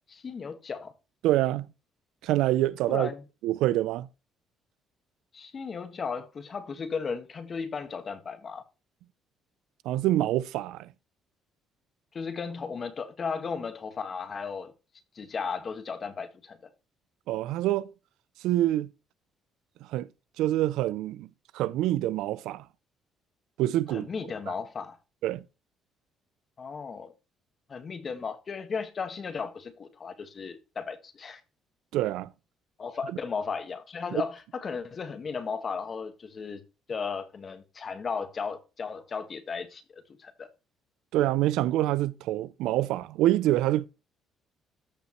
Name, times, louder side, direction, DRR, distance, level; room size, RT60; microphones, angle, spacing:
voice 1, 0.1-0.9 2.9-3.2 5.3-8.6 12.1-14.7 15.1-16.6 23.9-25.0 26.6-27.1 27.7-31.4 32.8-36.6 36.9-40.5, left 5 dB, 40° left, 1.6 m, -35 dB
voice 2, 1.2-1.7 2.2-3.1 3.4-4.1 9.8-10.9 17.3-17.9 18.4-18.9 19.9-20.1 20.4-21.3 21.5-22.6 23.6-24.1 24.5-24.6 25.2-25.4 31.9-32.3 34.1-34.2 41.1-43.9, right 14 dB, 85° right, 0.4 m, -26 dB
14.0 x 5.2 x 3.1 m
cardioid pair, 90°, 0 cm